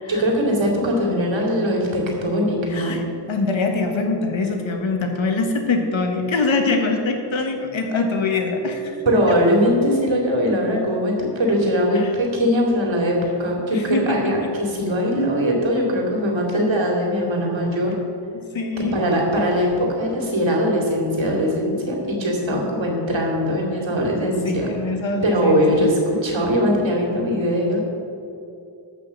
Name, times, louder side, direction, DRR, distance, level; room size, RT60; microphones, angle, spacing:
voice 1, 0.1-3.0 9.0-17.9 18.8-24.7 25.2-27.8, equal, 70° right, -1 dB, 2.6 m, -21 dB
voice 2, 2.7-9.0 9.3-9.4 11.9-12.1 13.7-14.5 18.5-19.0 22.5-22.6 24.2-25.9, left 3 dB, 75° left, 3 dB, 1.5 m, -24 dB
14.0 x 5.8 x 6.4 m, 2.6 s
wide cardioid pair, 125°, 47 cm